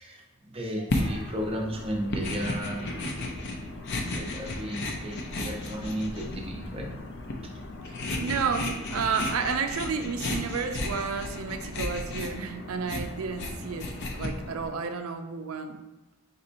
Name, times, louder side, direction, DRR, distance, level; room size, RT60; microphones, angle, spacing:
voice 1, 0.0-3.2 3.9-6.9 7.4-7.5, equal, 25° right, 0 dB, 0.6 m, -34 dB
sound 1, 0.9-14.7, left 2 dB, 55° left, 0.5 m, -34 dB
voice 2, 7.8-15.8, right 5 dB, 80° right, 7 dB, 0.4 m, -31 dB
4.1 x 4.0 x 2.5 m, 1.0 s
head